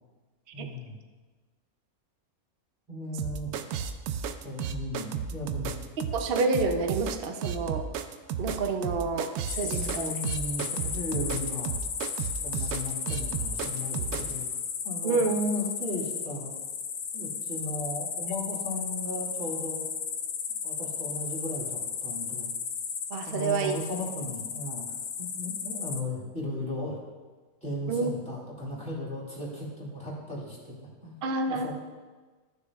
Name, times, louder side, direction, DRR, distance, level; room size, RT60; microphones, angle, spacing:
voice 1, 0.5-1.0 2.9-3.5 4.4-5.8 9.7-11.7 12.4-14.6 14.8-16.5 17.1-19.9 20.6-22.5 23.2-27.0 27.6-31.2 31.5-31.7, left 1 dB, 5° left, -7 dB, 2.5 m, -36 dB
sound 1, 3.2-14.3, right 7 dB, 90° right, 1.1 m, -33 dB
voice 2, 6.1-7.9 8.4-10.1 15.0-15.3 23.1-23.7 27.9-28.1 31.2-31.7, right 3 dB, 50° right, 5 dB, 0.7 m, -28 dB
sound 2, 9.5-26.0, left 6 dB, 70° left, 1.1 m, -34 dB
14.5 x 6.6 x 2.4 m, 1.3 s
omnidirectional pair, 1.5 m